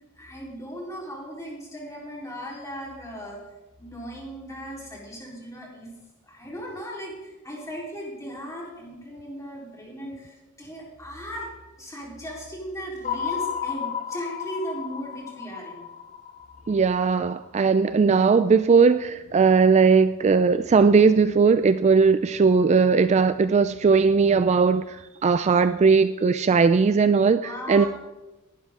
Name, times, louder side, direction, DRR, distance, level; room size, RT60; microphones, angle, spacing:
voice 1, 0.2-3.4 3.8-5.9 6.2-11.5 11.8-15.8 27.4-27.9, equal, 15° left, -4 dB, 4.0 m, -37 dB
sound 1, 13.0-17.3, left 8 dB, 35° left, 0.8 m, -33 dB
voice 2, 16.7-27.9, right 5 dB, 30° right, 12 dB, 0.3 m, -19 dB
17.5 x 12.0 x 3.8 m, 1.1 s
head